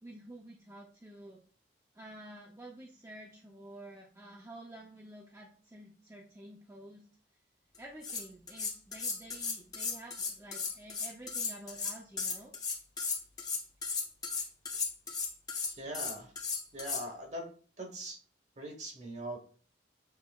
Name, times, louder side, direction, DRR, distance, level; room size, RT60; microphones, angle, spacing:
voice 1, 0.0-1.4 1.9-7.0 7.8-12.5, right 1 dB, 15° right, -2 dB, 0.5 m, -50 dB
sound 1, 7.7-7.8 8.0-17.0, left 5 dB, 20° left, 0.7 m, -36 dB
voice 2, 15.8-16.3 16.7-17.5 17.8-18.2 18.6-19.4, right 1 dB, 40° right, 3 dB, 1.0 m, -41 dB
6.8 x 3.2 x 2.3 m, 0.42 s
head